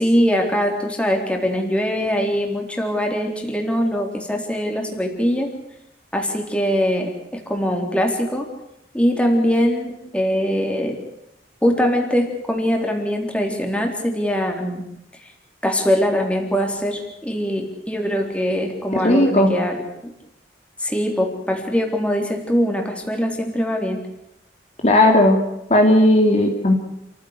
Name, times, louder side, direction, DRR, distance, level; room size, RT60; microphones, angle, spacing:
voice 1, 0.0-5.5 6.1-8.5 8.9-11.0 11.6-14.8 15.6-19.8 20.0-20.1 20.8-24.0, equal, 5° left, 2 dB, 3.8 m, -22 dB
voice 2, 19.0-19.5 24.8-25.4 25.7-26.7, left 1 dB, 40° left, 2 dB, 2.8 m, -15 dB
28.5 x 15.0 x 8.2 m, 0.84 s
head